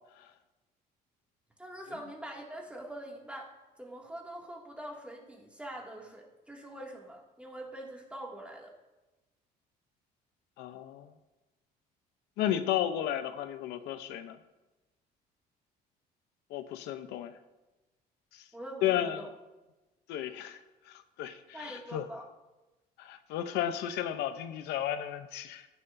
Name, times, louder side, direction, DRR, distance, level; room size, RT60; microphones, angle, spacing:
voice 1, 1.6-8.7 18.5-19.3 21.5-22.2, right 1 dB, 5° right, -2 dB, 2.3 m, -44 dB
voice 2, 10.6-11.1 12.4-14.4 16.5-17.3 18.3-18.4 18.8-19.3 20.1-20.6 20.9-22.0 23.0-25.7, left 11 dB, 85° left, 9 dB, 0.7 m, -33 dB
14.5 x 10.5 x 2.7 m, 1.1 s
cardioid pair, 110°, 17 cm